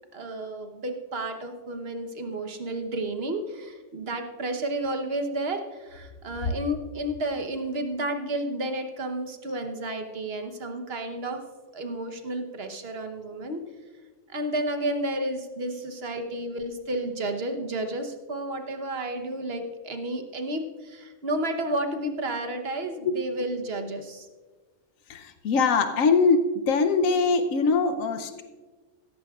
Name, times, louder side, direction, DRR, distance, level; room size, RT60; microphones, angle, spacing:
voice 1, 0.1-11.4 11.7-13.6 14.3-24.3, right 1 dB, 50° right, 6 dB, 1.2 m, -31 dB
voice 2, 25.1-28.4, left 4 dB, 85° left, 8 dB, 1.1 m, -22 dB
16.0 x 14.0 x 2.4 m, 1.3 s
omnidirectional pair, 1.3 m